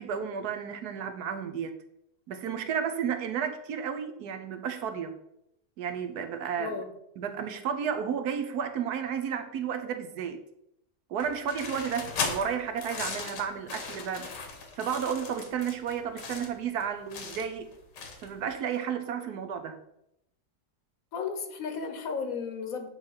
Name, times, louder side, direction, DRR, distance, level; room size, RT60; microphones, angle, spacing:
voice 1, 0.0-1.8 2.3-5.2 5.8-6.8 7.2-10.4 11.1-14.4 14.8-17.7 18.2-19.8, right 7 dB, 75° right, 9 dB, 1.2 m, -32 dB
voice 2, 6.6-6.9 21.1-22.9, left 5 dB, 60° left, 7 dB, 1.2 m, -34 dB
sound 1, 11.2-18.4, left 4 dB, 85° left, 1.8 m, -37 dB
8.8 x 3.3 x 5.5 m, 0.79 s
omnidirectional pair, 1.8 m